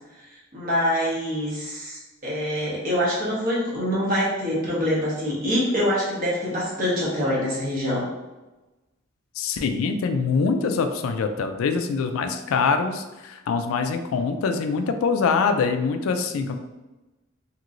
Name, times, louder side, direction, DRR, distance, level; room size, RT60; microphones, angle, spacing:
voice 1, 0.3-8.0, equal, 45° right, -6 dB, 1.1 m, -25 dB
voice 2, 9.4-16.6, left 5 dB, 90° left, 7 dB, 0.3 m, -24 dB
3.0 x 2.9 x 2.5 m, 1.1 s
head